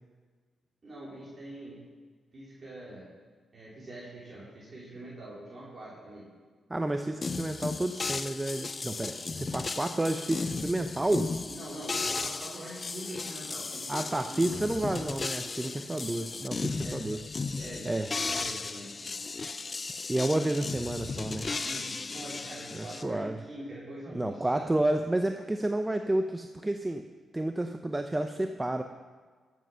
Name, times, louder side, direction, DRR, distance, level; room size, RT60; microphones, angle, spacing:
voice 1, 0.8-1.8 2.3-3.1 3.5-6.3 7.1-7.3 11.5-14.6 15.7-16.2 16.8-17.1 17.5-19.2 20.3-20.5 21.6-24.7, right 1 dB, 45° right, -7 dB, 3.8 m, -44 dB
voice 2, 6.7-11.3 13.9-17.2 17.8-18.1 19.4-19.5 20.1-21.5 22.7-23.4 24.1-27.1 27.3-28.8, right 1 dB, 20° right, 6 dB, 0.7 m, -30 dB
sound 1, 7.2-23.0, left 4 dB, 40° left, 0.5 m, -35 dB
13.5 x 7.7 x 5.7 m, 1.5 s
cardioid pair, 60°, 0 cm